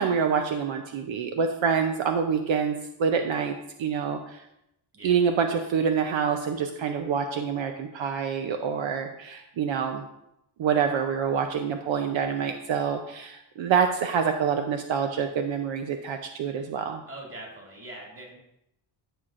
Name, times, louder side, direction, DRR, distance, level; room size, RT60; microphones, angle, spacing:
voice 1, 0.0-4.4 5.0-10.0 10.6-17.0, right 6 dB, 70° right, 5 dB, 0.7 m, -26 dB
voice 2, 17.1-18.4, right 1 dB, 25° right, -1 dB, 2.3 m, -42 dB
13.5 x 6.3 x 2.5 m, 0.83 s
wide cardioid pair, 140°, 48 cm